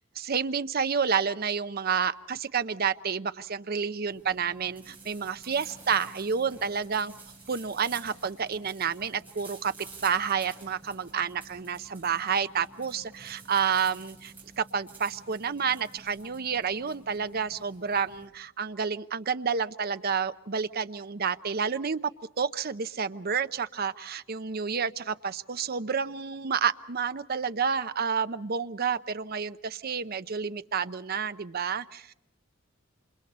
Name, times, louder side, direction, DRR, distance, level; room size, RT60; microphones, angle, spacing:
voice 1, 0.2-7.1 7.5-9.7 10.0-22.0 22.4-32.1, right 6 dB, 50° right, 12 dB, 0.7 m, -30 dB
sound 1, 4.1-18.3, right 3 dB, 10° right, 7.7 m, -50 dB
28.5 x 27.0 x 4.2 m, 0.85 s
head